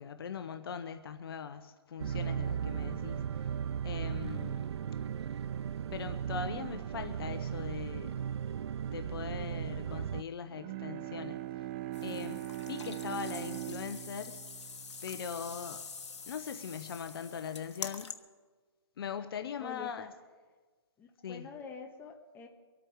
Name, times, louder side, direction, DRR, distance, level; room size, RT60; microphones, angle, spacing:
voice 1, 0.0-3.2 3.8-4.7 5.9-8.1 8.9-11.7 12.0-14.4 15.0-15.8 16.3-18.1 19.0-20.1 21.2-21.5, left 7 dB, 60° left, 9 dB, 1.1 m, -41 dB
sound 1, 2.0-10.2, right 8 dB, 75° right, 0.4 m, -36 dB
Bowed string instrument, 10.4-15.8, right 15 dB, 25° right, 0.6 m, -41 dB
sound 2, 11.9-18.1, left 5 dB, 90° left, 1.3 m, -45 dB
voice 2, 19.6-20.1 21.0-22.5, left 4 dB, 15° left, 2 dB, 1.5 m, -46 dB
24.5 x 8.9 x 4.8 m, 1.4 s
hypercardioid pair, 150°, 14 cm